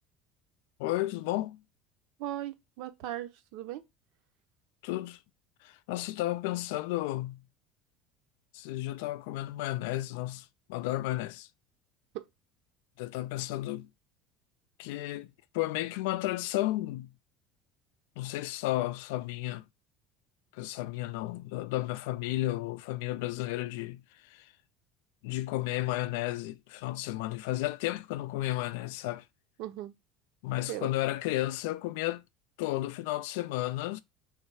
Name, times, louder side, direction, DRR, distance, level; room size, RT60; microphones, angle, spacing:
voice 1, 0.8-1.6 4.8-5.2 5.6-7.4 8.5-11.5 13.0-13.9 14.8-17.1 18.2-19.6 20.5-24.5 25.2-29.3 30.4-32.2 32.6-34.0, left 16 dB, 85° left, 0.4 m, -33 dB
voice 2, 2.2-3.8 12.1-12.2 29.6-29.9 30.7-30.9, right 13 dB, 65° right, 0.6 m, -38 dB
3.3 x 3.2 x 4.6 m
cardioid pair, 155°, 0 cm